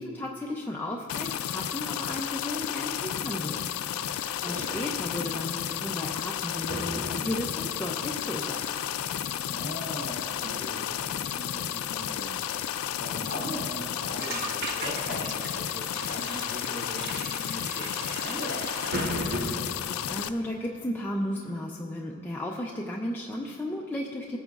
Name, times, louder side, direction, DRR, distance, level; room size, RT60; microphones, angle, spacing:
voice 1, 0.0-8.6 20.1-24.4, left 1 dB, 10° left, -2 dB, 0.4 m, -34 dB
sound 1, 1.1-20.3, left 10 dB, 80° left, 0.3 m, -32 dB
voice 2, 4.2-4.6 9.5-12.4 13.0-19.3, equal, 40° left, -3 dB, 2.5 m, -40 dB
sound 2, 4.5-19.5, equal, 85° right, 2.6 m, -40 dB
sound 3, 13.1-13.2 13.5-13.7 14.2-19.1, right 4 dB, 50° right, 0.8 m, -39 dB
17.5 x 9.0 x 2.4 m, 2.6 s
head